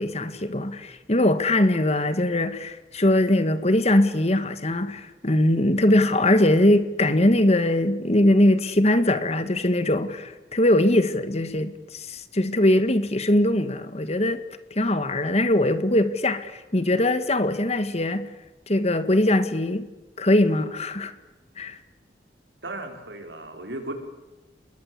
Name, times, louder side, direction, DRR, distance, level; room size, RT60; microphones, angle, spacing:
voice 1, 0.0-14.4 14.7-18.3 18.7-19.9 20.2-21.1 21.6-21.8, left 1 dB, 35° left, 1.8 m, -21 dB
voice 2, 22.6-23.9, right 2 dB, 75° right, 5.3 m, -35 dB
29.5 x 21.5 x 8.3 m
head